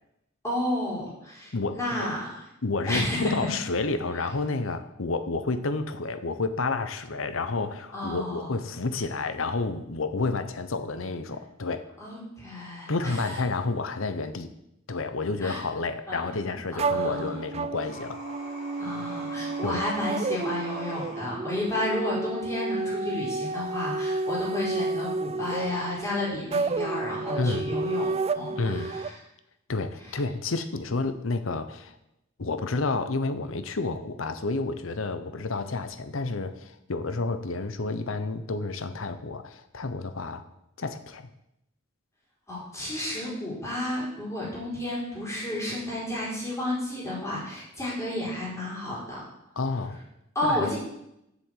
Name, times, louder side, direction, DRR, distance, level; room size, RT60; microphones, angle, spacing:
voice 1, 0.4-2.4 2.9-3.3 7.9-8.5 12.0-13.3 15.4-15.6 16.1-16.5 16.8-17.3 18.8-29.1 42.5-49.3 50.3-50.8, left 1 dB, 15° left, -6 dB, 4.6 m, -32 dB
voice 2, 1.5-2.1 2.6-11.9 12.9-14.5 14.9-18.2 19.6-19.8 27.4-27.8 28.6-28.9 29.7-32.0 32.4-40.5 40.8-41.3 49.6-50.0 50.5-50.7, left 3 dB, 70° left, 10 dB, 0.9 m, -30 dB
sound 1, 16.8-29.1, right 3 dB, 30° right, 0.4 m, -31 dB
sound 2, 17.8-21.2, left 1 dB, 35° left, 3.8 m, -43 dB
7.5 x 7.2 x 8.3 m, 0.83 s
head